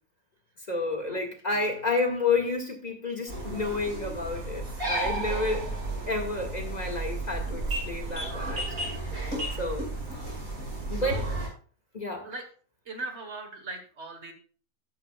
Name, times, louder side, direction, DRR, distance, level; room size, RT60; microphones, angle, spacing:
voice 1, 0.7-5.7 6.1-9.9 10.9-11.3 11.9-12.3, left 3 dB, 30° left, 2.1 m, -30 dB
sound 1, 3.3-11.5, right 2 dB, 80° right, 5.8 m, -33 dB
voice 2, 10.9-11.3 12.2-12.4 12.8-14.3, right 3 dB, 50° right, 1.7 m, -40 dB
13.0 x 10.5 x 2.4 m
omnidirectional pair, 1.5 m